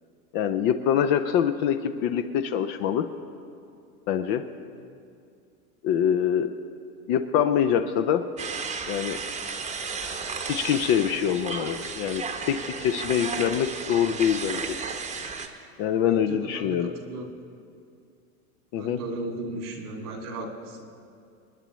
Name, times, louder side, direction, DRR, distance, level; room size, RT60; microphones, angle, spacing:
voice 1, 0.3-3.1 4.1-4.4 5.8-6.5 7.1-8.2 8.9-9.2 10.5-14.8 15.8-16.9 18.7-19.0, left 9 dB, 30° left, 9 dB, 0.3 m, -24 dB
sound 1, 8.4-15.5, right 5 dB, 15° right, 0.8 m, -34 dB
voice 2, 16.0-17.5 18.8-20.9, right 2 dB, 85° right, 2 dB, 2.4 m, -36 dB
27.0 x 9.8 x 3.1 m, 2.4 s
hypercardioid pair, 120°, 45 cm